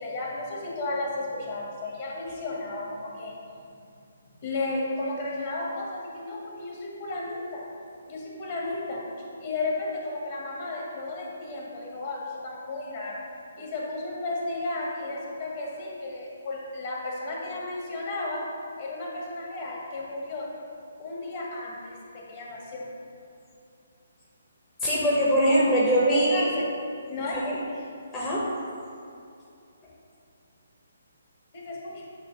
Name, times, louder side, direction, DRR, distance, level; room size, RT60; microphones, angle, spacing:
voice 1, 0.0-3.3 4.4-7.6 8.1-9.0 9.4-13.2 13.6-18.4 18.8-20.5 21.0-22.9 26.1-26.6 27.1-27.4 31.5-32.0, left 2 dB, 40° left, -3 dB, 1.7 m, -33 dB
voice 2, 24.8-26.4 27.3-27.6 28.1-28.4, equal, 15° left, -7 dB, 1.0 m, -22 dB
9.0 x 3.0 x 5.4 m, 2.5 s
figure-of-eight pair, 135°, 0 cm